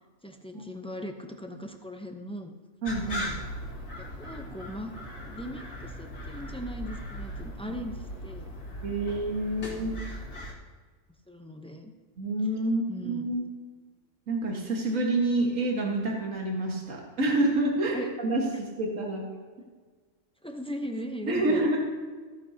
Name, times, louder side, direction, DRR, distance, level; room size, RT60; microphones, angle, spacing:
voice 1, 0.2-2.5 3.0-3.5 4.0-4.9 5.3-8.5 9.6-10.0 11.3-11.9 12.9-13.3 17.9-18.1 20.4-21.7, equal, 5° left, 4 dB, 0.5 m, -39 dB
sound 1, 2.8-10.5, equal, 70° left, 2.4 m, -38 dB
voice 2, 2.8-3.2 7.7-7.8 8.8-10.0 12.2-13.4 14.3-19.3 21.3-21.8, right 2 dB, 65° right, -1 dB, 2.0 m, -28 dB
15.0 x 9.6 x 2.8 m, 1.4 s
omnidirectional pair, 1.5 m